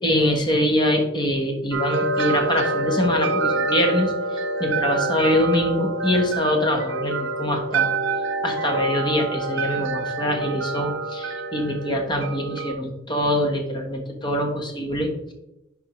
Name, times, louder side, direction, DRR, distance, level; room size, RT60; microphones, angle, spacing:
voice 1, 0.0-7.9 8.4-15.3, left 1 dB, 25° left, 2 dB, 1.1 m, -24 dB
sound 1, 1.7-12.7, right 3 dB, 70° right, 0.7 m, -26 dB
10.5 x 3.7 x 3.1 m, 0.89 s
head